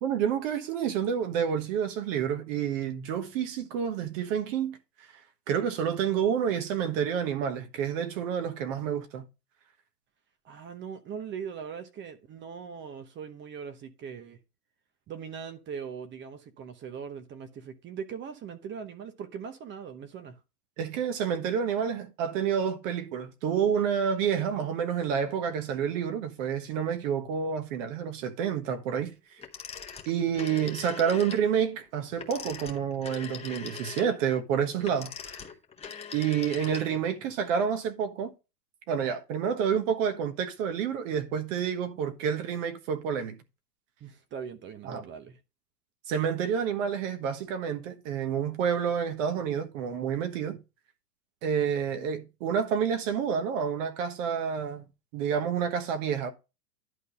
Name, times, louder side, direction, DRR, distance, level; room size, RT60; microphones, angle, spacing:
voice 1, 0.0-5.2 5.5-9.2 20.8-29.4 30.1-35.4 36.1-38.3 38.9-43.4 44.8-45.0 46.1-50.6 51.4-54.9 55.1-56.3, right 7 dB, 50° right, 1.4 m, -29 dB
voice 2, 10.4-14.4 15.1-20.4 44.0-45.4, right 7 dB, 25° right, 0.9 m, -40 dB
Telephone, 29.4-31.5 32.1-37.2, left 6 dB, 10° left, 1.2 m, -42 dB
11.0 x 4.0 x 5.2 m
hypercardioid pair, 115°, 49 cm